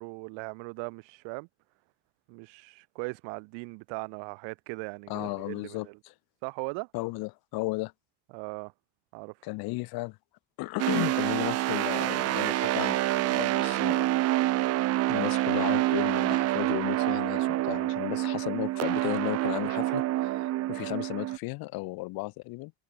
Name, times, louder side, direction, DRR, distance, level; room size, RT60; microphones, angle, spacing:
voice 1, 0.0-1.5 2.3-6.0 6.4-6.9 8.3-8.7 9.1-9.3, right 33 dB, 65° right, 4.4 m, -39 dB
voice 2, 5.1-5.9 6.9-7.9 9.4-10.2 10.6-14.1 15.1-22.7, left 23 dB, 50° left, 1.4 m, -34 dB
sound 1, 10.8-21.4, right 16 dB, 30° right, 0.8 m, -27 dB
cardioid pair, 170°, 47 cm